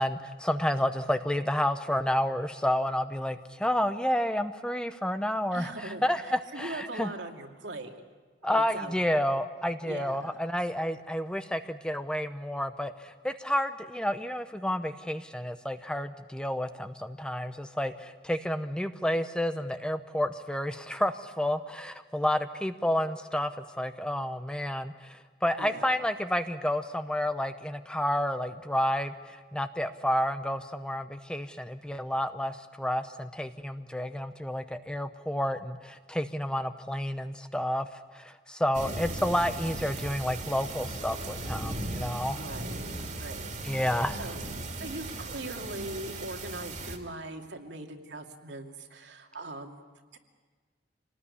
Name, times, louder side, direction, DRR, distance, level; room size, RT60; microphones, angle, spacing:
voice 1, 0.0-7.1 8.4-23.5 23.8-37.9 38.1-42.4 43.6-44.2, left 1 dB, 5° left, 9 dB, 0.8 m, -30 dB
voice 2, 5.5-8.0 8.4-9.3 9.8-10.4 25.6-25.9 42.3-43.5 43.8-44.4 44.8-49.8 50.1-50.2, right 2 dB, 75° right, 3 dB, 2.5 m, -41 dB
sound 1, 38.7-47.0, right 2 dB, 40° right, 2.6 m, -37 dB
26.5 x 19.0 x 9.8 m, 1.5 s
head